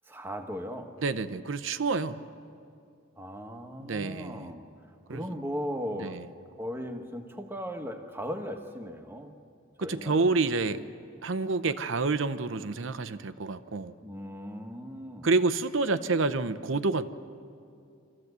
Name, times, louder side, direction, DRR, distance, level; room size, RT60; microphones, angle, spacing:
voice 1, 0.1-1.0 3.2-4.7 5.1-6.2 6.6-9.3 9.8-10.3 14.0-15.3, equal, 10° right, 5 dB, 1.2 m, -37 dB
voice 2, 1.0-2.2 3.8-4.5 5.1-5.2 6.0-6.2 9.8-10.8 11.2-13.9 15.2-17.1, right 3 dB, 65° right, 12 dB, 0.7 m, -28 dB
25.0 x 15.0 x 8.1 m, 2.4 s
head